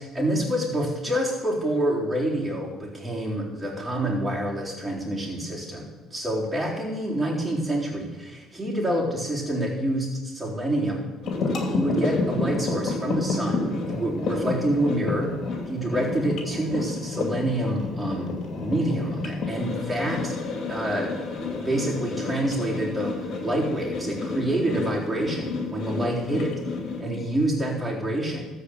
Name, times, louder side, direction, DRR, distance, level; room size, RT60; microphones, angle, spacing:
voice 1, 0.0-11.1 11.7-15.4 15.7-20.4 20.7-21.2 21.5-26.5 27.0-28.5, right 1 dB, 15° right, -5 dB, 4.0 m, -27 dB
sound 1, 11.2-27.0, left 3 dB, 50° left, 2.7 m, -30 dB
13.5 x 4.9 x 8.1 m, 1.2 s
hypercardioid pair, 60°, 0 cm